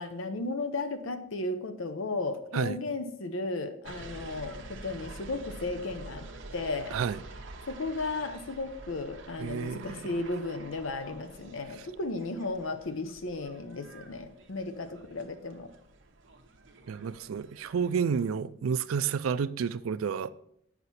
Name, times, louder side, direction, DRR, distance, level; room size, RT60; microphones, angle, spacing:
voice 1, 0.0-6.2 6.5-6.9 7.7-15.7, left 2 dB, 75° left, 0.7 m, -35 dB
sound 1, 3.8-18.3, right 2 dB, 60° right, 0.9 m, -48 dB
voice 2, 6.9-7.2 9.4-10.0 16.9-20.3, right 6 dB, 85° right, 0.4 m, -30 dB
8.0 x 5.8 x 4.1 m
head